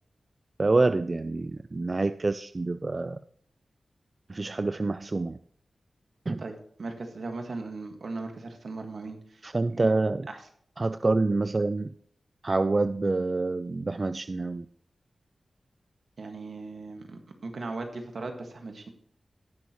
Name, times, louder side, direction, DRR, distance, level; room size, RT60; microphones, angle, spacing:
voice 1, 0.6-3.2 4.3-5.4 6.3-6.4 9.4-10.3 10.8-11.9 12.4-14.7, right 3 dB, 40° right, 12 dB, 0.4 m, -27 dB
voice 2, 6.4-9.5 9.7-9.9 10.3-10.4 16.2-18.9, right 3 dB, 70° right, 5 dB, 1.6 m, -38 dB
18.0 x 6.3 x 3.0 m, 0.64 s
cardioid pair, 60°, 0 cm